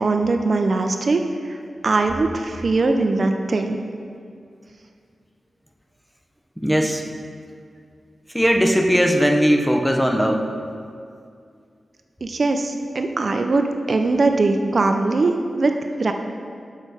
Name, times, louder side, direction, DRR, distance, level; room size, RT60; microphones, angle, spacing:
voice 1, 0.0-1.6 1.8-3.8 12.2-16.1, right 3 dB, 45° right, 5 dB, 0.4 m, -21 dB
voice 2, 6.6-7.0 8.3-10.5, equal, ahead, 3 dB, 0.6 m, -19 dB
6.5 x 6.4 x 4.7 m, 2.3 s
wide cardioid pair, 135°, 0 cm